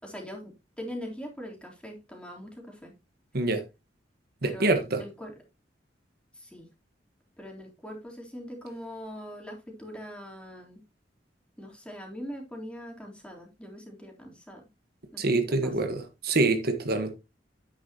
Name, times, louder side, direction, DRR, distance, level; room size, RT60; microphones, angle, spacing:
voice 1, 0.0-2.9 4.4-5.3 6.3-6.7 7.4-10.8 11.6-14.7 15.1-15.9, equal, 5° left, 3.4 m, -42 dB
voice 2, 4.4-5.0 15.2-17.1, right 2 dB, 60° right, 1.4 m, -26 dB
10.0 x 9.2 x 2.9 m
head